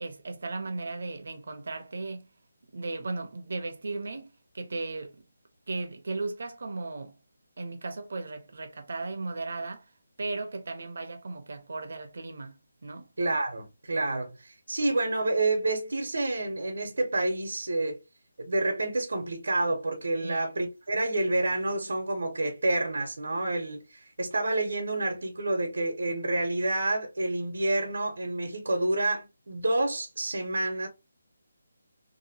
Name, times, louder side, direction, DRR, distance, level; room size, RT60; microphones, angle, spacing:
voice 1, 0.0-2.3 2.7-4.3 4.5-5.2 5.7-7.1 7.6-9.9 10.2-13.1 20.2-20.5, right 3 dB, 45° right, 0.6 m, -36 dB
voice 2, 13.2-18.0 18.4-23.8 24.2-30.9, right 2 dB, 75° right, 0.9 m, -28 dB
2.8 x 2.1 x 2.7 m
hypercardioid pair, 180°, 0 cm